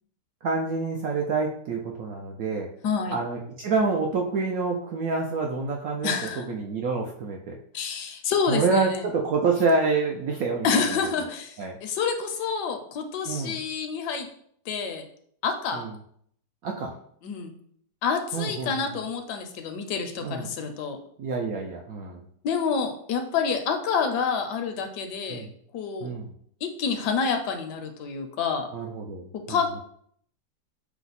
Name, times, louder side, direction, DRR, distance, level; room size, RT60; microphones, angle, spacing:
voice 1, 0.4-2.7 3.1-7.6 8.5-11.0 11.6-11.8 13.3-13.6 15.7-15.9 16.6-16.9 18.3-18.9 20.2-20.5 21.2-22.3 25.3-25.5 26.0-26.3 28.7-29.6, right 4 dB, 70° right, 1 dB, 0.8 m, -27 dB
voice 2, 2.8-3.2 6.0-6.5 7.7-9.0 10.6-14.3 14.7-15.0 15.4-15.9 17.2-17.5 18.0-21.0 22.4-25.5 25.7-26.1 26.6-28.7 29.5-29.8, left 5 dB, 75° left, 5 dB, 1.2 m, -28 dB
5.8 x 2.0 x 4.0 m, 0.64 s
omnidirectional pair, 1.9 m